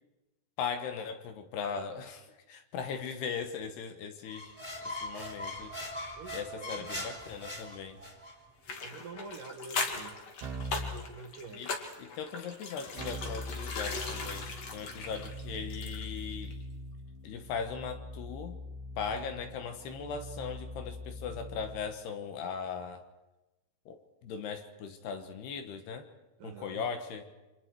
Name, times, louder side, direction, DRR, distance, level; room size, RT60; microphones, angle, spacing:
voice 1, 0.6-4.6 4.8-5.7 6.3-8.0 11.5-11.7 12.0-16.6 17.2-18.6 19.0-23.0 23.9-26.1 26.4-27.3, left 6 dB, 70° left, 7 dB, 3.2 m, -39 dB
sound 1, 4.3-8.4, left 1 dB, 5° right, 3.5 m, -40 dB
voice 2, 6.2-6.9 8.8-10.2 10.7-11.6 26.4-26.8, right 4 dB, 60° right, 4 dB, 2.7 m, -46 dB
sound 2, 8.6-16.2 16.5-16.6, left 4 dB, 45° left, 2.7 m, -39 dB
Keyboard (musical), 10.4-11.0 13.0-21.9, equal, 85° right, 6.2 m, -42 dB
29.5 x 25.5 x 4.8 m, 1.1 s
omnidirectional pair, 5.4 m